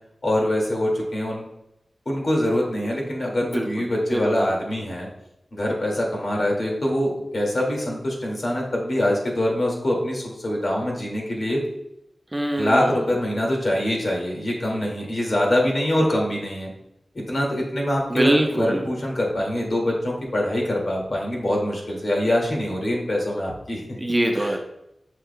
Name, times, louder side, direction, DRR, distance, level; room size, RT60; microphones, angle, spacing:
voice 1, 0.2-1.4 2.1-5.1 5.5-11.6 12.6-16.7 17.1-24.0 24.4-24.5, left 1 dB, 55° left, -1 dB, 2.1 m, -24 dB
voice 2, 4.1-4.5 12.3-13.0 18.1-18.9 23.9-24.6, right 1 dB, 20° right, 2 dB, 0.8 m, -23 dB
7.4 x 6.4 x 2.2 m, 0.82 s
wide cardioid pair, 65°, 0 cm